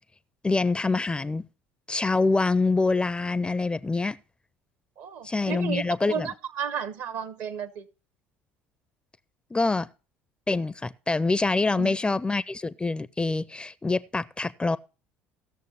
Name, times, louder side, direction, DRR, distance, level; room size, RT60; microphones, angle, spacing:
voice 1, 0.4-1.4 1.9-4.2 5.2-6.3 9.5-9.9 10.5-14.8, left 3 dB, 15° left, 0.4 m, -25 dB
voice 2, 5.0-7.9 11.8-12.0, right 7 dB, 65° right, 0.9 m, -33 dB
17.0 x 6.7 x 3.1 m
hypercardioid pair, 60°, 6 cm